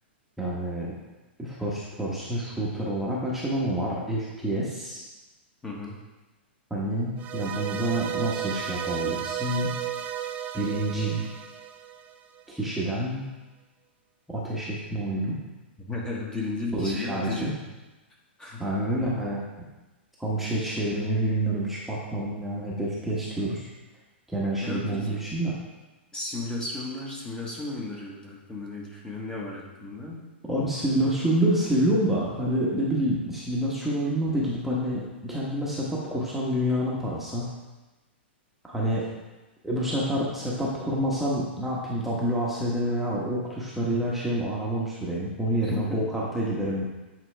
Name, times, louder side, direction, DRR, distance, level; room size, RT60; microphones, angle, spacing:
voice 1, 0.4-0.9 1.4-5.0 6.7-9.7 10.5-11.2 12.5-13.3 14.3-15.4 16.7-17.5 18.6-19.4 20.2-23.7 24.3-25.5 30.5-37.5 38.6-39.0 39.6-46.8, right 1 dB, 5° right, -6 dB, 1.2 m, -28 dB
voice 2, 5.6-6.0 15.8-17.6 18.4-18.7 24.6-25.3 26.1-30.2 45.5-46.0, left 2 dB, 15° left, -3 dB, 1.3 m, -34 dB
sound 1, 7.2-12.4, right 10 dB, 25° right, 0.5 m, -33 dB
8.8 x 4.5 x 3.4 m, 1.1 s
hypercardioid pair, 135°, 6 cm